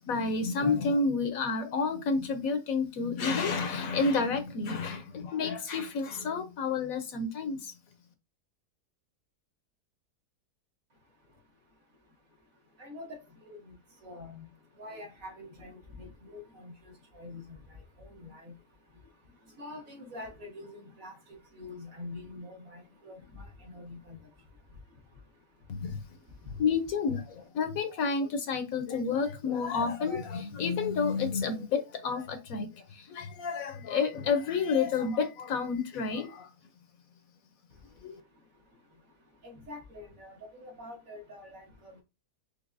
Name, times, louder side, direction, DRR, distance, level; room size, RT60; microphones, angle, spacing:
voice 1, 0.0-7.7 25.7-26.0 26.6-36.5 38.0-38.2, left 4 dB, 70° left, 1.0 m, -30 dB
voice 2, 12.8-13.6 14.0-14.5 14.8-16.7 17.1-17.6 18.1-18.6 19.6-21.1 21.5-23.4 23.7-24.2 39.4-42.0, left 2 dB, 60° right, 1.8 m, -45 dB
5.3 x 3.0 x 2.5 m
omnidirectional pair, 1.7 m